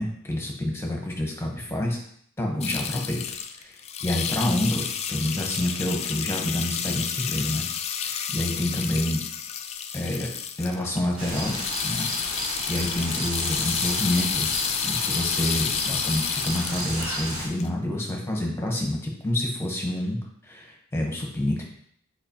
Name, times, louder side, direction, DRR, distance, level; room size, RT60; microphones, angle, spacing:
voice 1, 0.0-2.0 2.4-3.2 3.6-7.6 8.0-9.2 9.9-10.3 10.6-11.6 11.8-12.1 12.4-14.5 14.8-21.6, left 1 dB, 10° left, 0 dB, 1.1 m, -28 dB
sound 1, 2.6-17.2 17.6-17.7, left 8 dB, 30° left, 0.3 m, -30 dB
sound 2, 11.2-17.5, right 1 dB, 75° right, 2.7 m, -32 dB
7.8 x 4.5 x 3.0 m, 0.66 s
head